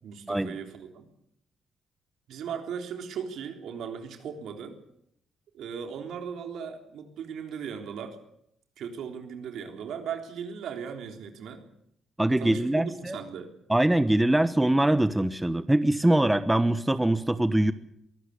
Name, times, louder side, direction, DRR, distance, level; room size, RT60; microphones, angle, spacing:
voice 1, 0.0-1.1 2.3-4.8 5.5-8.2 8.8-11.6 12.4-13.5, right 7 dB, 75° right, 5 dB, 3.6 m, -37 dB
voice 2, 12.2-13.2 13.7-17.7, right 1 dB, 10° right, 12 dB, 1.1 m, -23 dB
22.5 x 16.0 x 8.4 m, 0.74 s
cardioid pair, 90°, 0 cm